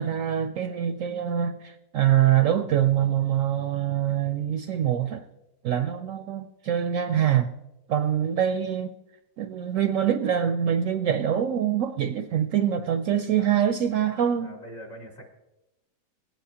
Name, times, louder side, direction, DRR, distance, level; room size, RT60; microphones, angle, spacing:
voice 1, 0.0-5.2 5.6-7.6 7.9-8.9 9.4-14.5, right 10 dB, 70° right, 0.8 m, -24 dB
voice 2, 13.3-13.7 14.4-15.3, equal, 55° left, 2.8 m, -44 dB
18.5 x 9.0 x 2.9 m
omnidirectional pair, 1.7 m